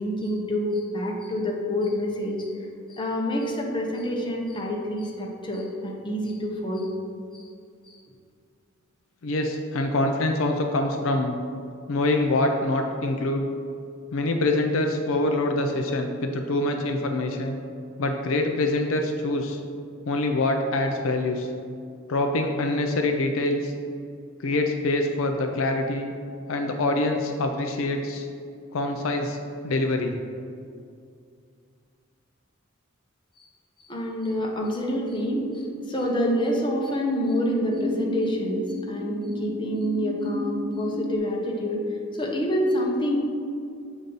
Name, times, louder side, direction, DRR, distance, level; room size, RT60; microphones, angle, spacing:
voice 1, 0.0-2.5 2.9-7.0 7.3-7.5 7.9-8.0 33.4-33.5 33.8-41.8 42.1-43.2, equal, 25° left, -1 dB, 0.8 m, -27 dB
voice 2, 9.2-11.4 11.9-13.5 14.1-17.6 18.0-19.6 20.0-21.5 22.1-23.7 24.4-26.1 26.5-28.3 28.7-29.4 29.6-30.2, left 2 dB, 70° left, 4 dB, 0.4 m, -25 dB
sound 1, 35.2-41.2, left 2 dB, 80° right, 0.6 m, -34 dB
7.3 x 2.7 x 5.3 m, 2.3 s
head